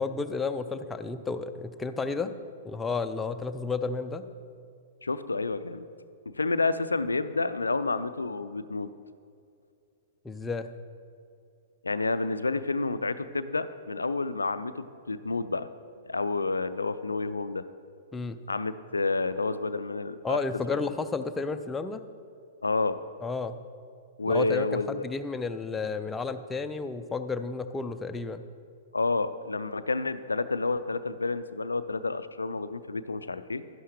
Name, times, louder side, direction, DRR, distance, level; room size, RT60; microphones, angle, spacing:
voice 1, 0.0-2.3 2.6-4.3 10.2-10.7 18.1-18.4 20.2-22.0 23.2-23.6 24.3-28.4, left 4 dB, 10° left, 8 dB, 0.4 m, -32 dB
voice 2, 5.0-5.9 6.3-8.9 11.8-15.7 16.1-17.6 18.5-20.4 22.6-23.0 24.2-25.0 28.9-33.6, left 3 dB, 75° left, 13 dB, 0.3 m, -29 dB
11.0 x 11.0 x 3.2 m, 2.4 s
figure-of-eight pair, 105°, 0 cm